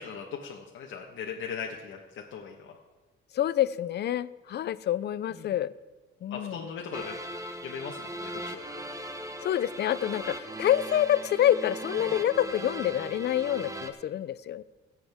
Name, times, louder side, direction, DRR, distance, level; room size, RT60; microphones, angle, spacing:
voice 1, 0.0-2.7 5.3-5.5 6.3-7.1 7.6-8.9 12.0-12.1, left 6 dB, 75° left, -1 dB, 1.3 m, -39 dB
voice 2, 3.3-5.7 6.2-6.6 9.4-14.6, left 11 dB, 60° left, 16 dB, 0.5 m, -27 dB
sound 1, 6.9-13.9, right 1 dB, 15° right, 1.1 m, -39 dB
22.5 x 7.7 x 3.6 m, 1.2 s
cardioid pair, 90°, 20 cm